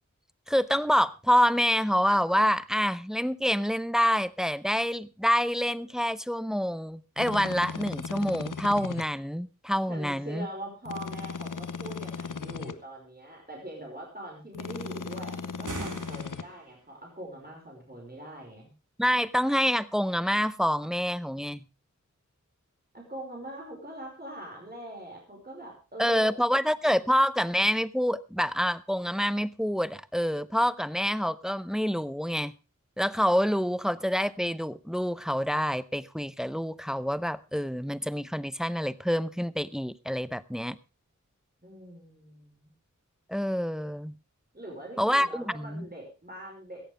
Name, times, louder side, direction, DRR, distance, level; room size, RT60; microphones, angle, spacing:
voice 1, 0.5-10.5 19.0-21.6 26.0-32.5 33.0-40.8 43.3-44.1 45.0-45.9, equal, ahead, 0.7 m, -27 dB
sound 1, 7.2-9.1 10.9-12.8 14.5-16.4, left 5 dB, 85° left, 0.9 m, -37 dB
voice 2, 9.9-18.7 22.9-26.3 41.6-42.7 44.5-46.8, right 1 dB, 30° right, 5.4 m, -42 dB
sound 2, 15.5-16.8, right 2 dB, 75° right, 2.3 m, -40 dB
17.0 x 14.0 x 3.4 m
wide cardioid pair, 55°, 31 cm